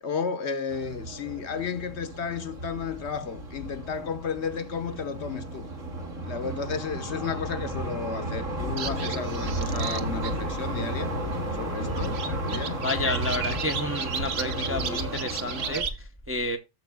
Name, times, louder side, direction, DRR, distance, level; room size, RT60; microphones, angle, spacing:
voice 1, 0.0-5.7 6.2-11.1 11.5-12.8, left 6 dB, 60° left, 1.1 m, -33 dB
sound 1, 0.7-15.8, right 1 dB, 75° right, 2.4 m, -33 dB
sound 2, 8.8-15.9, right 6 dB, 55° right, 1.1 m, -36 dB
voice 2, 12.8-16.6, left 2 dB, 15° right, 0.6 m, -30 dB
13.0 x 7.2 x 2.2 m
omnidirectional pair, 1.4 m